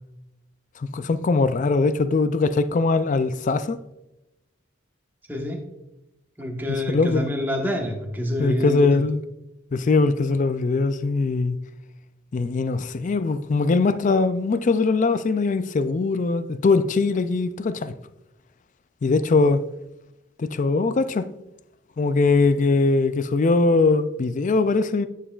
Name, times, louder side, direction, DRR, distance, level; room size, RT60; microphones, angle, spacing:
voice 1, 0.8-3.8 6.9-7.3 8.4-9.2 9.7-11.6 12.3-17.9 19.0-19.6 20.4-21.3 22.0-25.1, left 3 dB, 35° left, 0.3 m, -21 dB
voice 2, 5.3-5.6 6.4-9.0, left 1 dB, 10° right, 1.3 m, -27 dB
9.9 x 7.4 x 2.4 m
head